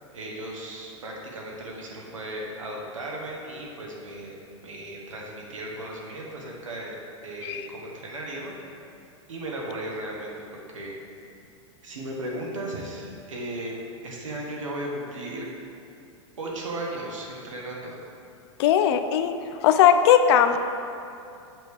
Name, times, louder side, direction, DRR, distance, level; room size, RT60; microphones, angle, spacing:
voice 1, 0.1-6.9 7.2-8.5 9.3-10.3 10.7-11.0 11.8-15.5 16.4-18.0, right 1 dB, 90° right, -2 dB, 1.3 m, -36 dB
voice 2, 18.6-19.4 19.6-20.6, left 9 dB, 55° left, 9 dB, 0.5 m, -18 dB
7.5 x 4.8 x 3.5 m, 2.5 s
hypercardioid pair, 115°, 16 cm